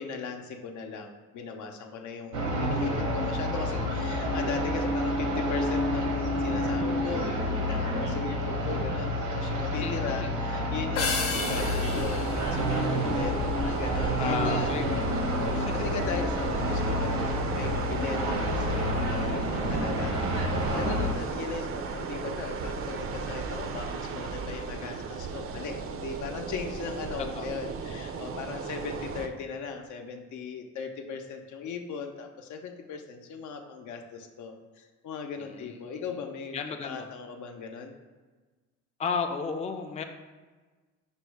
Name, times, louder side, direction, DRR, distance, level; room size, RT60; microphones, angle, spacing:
voice 1, 0.0-14.7 15.5-37.9, left 5 dB, 75° left, 4 dB, 0.6 m, -38 dB
sound 1, 2.3-21.1, left 1 dB, 75° right, 0.8 m, -29 dB
voice 2, 9.8-10.4 14.2-14.8 15.5-15.9 18.8-19.3 27.3-27.5 35.4-36.0 36.5-37.1 39.0-40.0, left 5 dB, 25° left, 5 dB, 0.4 m, -34 dB
sound 2, 10.9-13.6, left 4 dB, 50° left, 0.8 m, -33 dB
sound 3, 11.3-29.3, right 5 dB, 50° right, 0.5 m, -35 dB
5.3 x 2.1 x 4.6 m, 1.3 s
cardioid pair, 90°, 30 cm